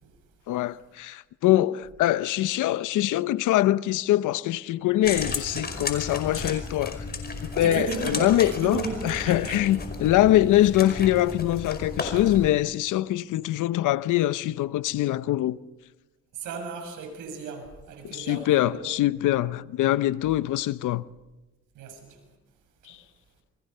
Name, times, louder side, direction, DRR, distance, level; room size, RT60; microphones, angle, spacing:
voice 1, 0.5-7.0 7.4-15.6 18.0-21.0 22.9-23.0, left 14 dB, 85° left, 0.8 m, -23 dB
sound 1, 5.0-12.5, left 3 dB, 30° left, 5.2 m, -34 dB
voice 2, 5.3-5.7 6.3-6.6 7.6-9.6 16.3-18.9 21.7-22.3, right 4 dB, 90° right, 6.7 m, -35 dB
29.0 x 24.0 x 5.6 m
cardioid pair, 90°, 30 cm